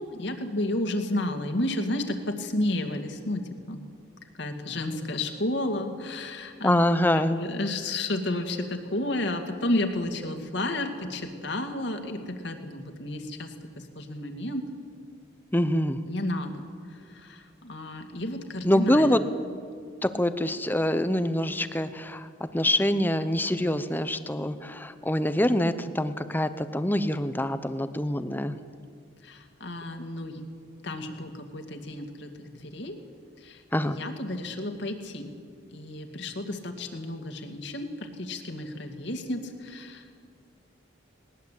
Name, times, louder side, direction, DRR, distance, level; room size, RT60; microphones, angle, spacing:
voice 1, 0.0-3.8 4.3-14.7 16.0-19.2 29.2-30.4 30.8-33.0 33.4-35.3 35.7-40.2, left 1 dB, 60° left, 5 dB, 2.3 m, -32 dB
voice 2, 6.6-7.4 15.5-16.0 18.6-19.2 20.0-22.3 22.5-28.6 33.7-34.0, left 1 dB, 10° left, 11 dB, 0.8 m, -25 dB
20.0 x 20.0 x 8.4 m, 2.2 s
head